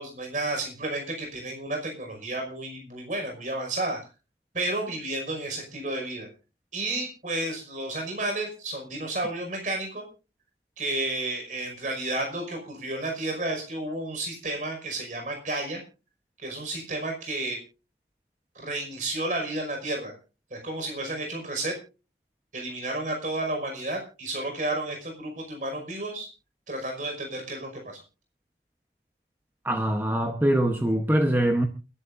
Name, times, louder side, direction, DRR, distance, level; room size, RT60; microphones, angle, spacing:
voice 1, 0.0-4.0 4.5-6.3 6.7-10.1 10.8-15.8 16.4-17.6 18.5-20.1 20.5-21.8 22.5-26.3 26.7-28.0, right 2 dB, 45° right, 3 dB, 5.5 m, -31 dB
voice 2, 29.6-31.7, right 1 dB, 10° right, 4 dB, 1.0 m, -23 dB
29.0 x 11.0 x 2.6 m, 0.33 s
head